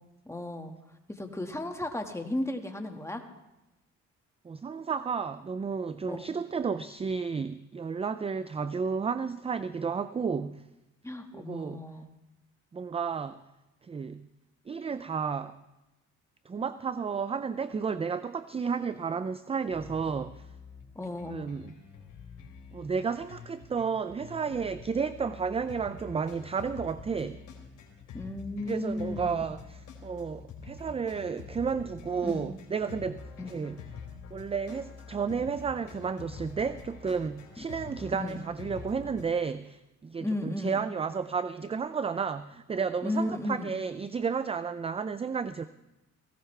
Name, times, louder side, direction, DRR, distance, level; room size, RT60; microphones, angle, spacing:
voice 1, 0.2-0.7 1.1-3.2 6.1-6.3 11.0-12.1 20.9-21.4 28.1-29.5 32.2-32.4 33.4-33.6 37.6-37.7 38.1-38.4 40.2-40.8 43.0-43.7, left 1 dB, 10° left, 4 dB, 1.6 m, -34 dB
voice 2, 4.4-10.6 11.3-11.8 12.7-13.4 13.8-14.2 14.7-15.6 16.5-20.4 21.3-21.7 22.7-27.4 28.7-33.8 34.3-45.6, right 5 dB, 20° right, 13 dB, 0.4 m, -32 dB
sound 1, 19.7-39.3, left 6 dB, 75° left, 3.2 m, -46 dB
18.0 x 16.5 x 3.3 m, 0.96 s
cardioid pair, 90°, 30 cm